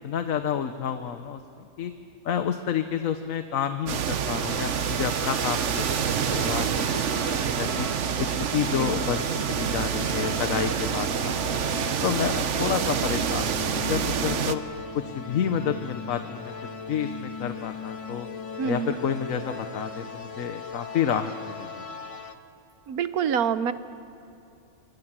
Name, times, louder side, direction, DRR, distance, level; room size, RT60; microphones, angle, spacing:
voice 1, 0.0-1.9 2.2-7.9 8.2-11.6 12.0-14.6 14.9-16.5 16.9-18.3 18.6-21.7, left 8 dB, 70° left, 8 dB, 1.3 m, -30 dB
sound 1, 3.9-14.6, right 7 dB, 60° right, 1.1 m, -27 dB
sound 2, 4.4-22.3, left 5 dB, 25° left, 1.3 m, -39 dB
voice 2, 18.6-19.0 22.9-23.7, right 7 dB, 80° right, 12 dB, 1.4 m, -26 dB
26.0 x 24.0 x 7.5 m, 2.6 s
omnidirectional pair, 1.5 m